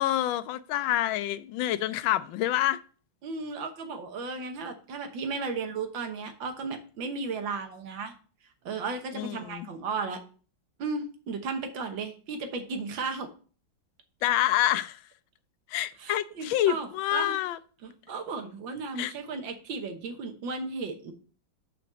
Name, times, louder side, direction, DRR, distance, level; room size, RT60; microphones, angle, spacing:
voice 1, 0.0-2.8 9.1-9.7 14.2-15.0 15.7-17.6 19.0-19.1, left 13 dB, 90° left, 1.4 m, -27 dB
voice 2, 3.2-8.1 8.7-10.2 10.8-13.3 16.0-17.4 17.8-21.1, right 4 dB, 80° right, 1.9 m, -35 dB
5.9 x 5.2 x 6.8 m
omnidirectional pair, 2.1 m